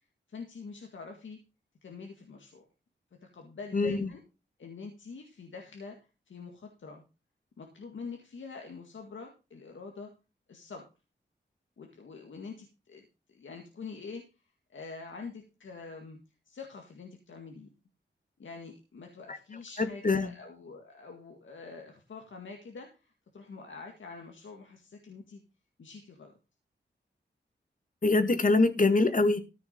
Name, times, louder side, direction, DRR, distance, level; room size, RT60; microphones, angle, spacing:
voice 1, 0.3-1.4 1.8-2.6 3.2-4.2 4.6-7.0 7.6-10.1 10.5-10.9 11.8-14.3 14.7-16.2 16.5-17.7 18.4-25.4 25.8-26.3, left 4 dB, 80° left, 3 dB, 1.9 m, -45 dB
voice 2, 3.7-4.1 19.3-19.4 19.8-20.3 28.0-29.4, left 3 dB, 45° left, 9 dB, 1.8 m, -24 dB
14.0 x 6.0 x 5.3 m, 0.30 s
wide cardioid pair, 70°, 20 cm